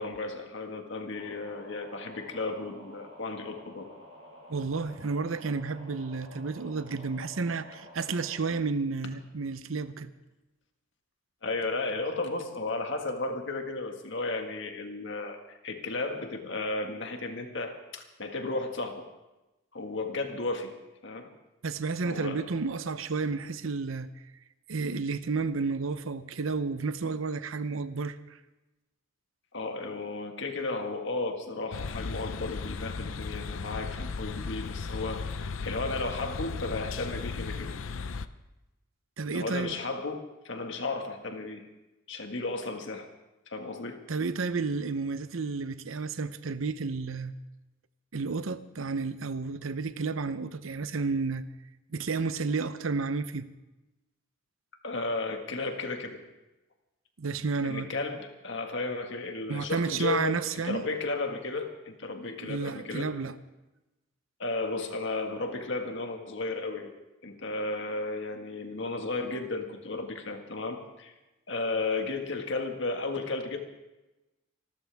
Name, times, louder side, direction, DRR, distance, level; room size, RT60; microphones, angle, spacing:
voice 1, 0.0-3.9 11.4-19.0 19.7-20.7 21.0-21.3 22.0-22.4 29.5-37.7 39.3-41.6 42.1-43.1 43.5-44.0 54.8-56.2 57.6-63.1 64.4-66.9 67.2-71.1 71.5-73.6, left 3 dB, 60° left, 4 dB, 1.8 m, -34 dB
sound 1, 1.1-8.5, equal, 35° right, 7.3 m, -50 dB
voice 2, 4.5-10.1 21.6-24.1 24.7-28.4 39.2-39.7 44.1-47.4 48.1-51.5 51.9-53.5 57.2-57.9 59.5-60.8 62.4-63.3, right 4 dB, 80° right, 13 dB, 0.8 m, -31 dB
sound 2, 31.7-38.3, left 4 dB, 85° left, 0.6 m, -36 dB
26.0 x 13.0 x 3.5 m, 1.0 s
head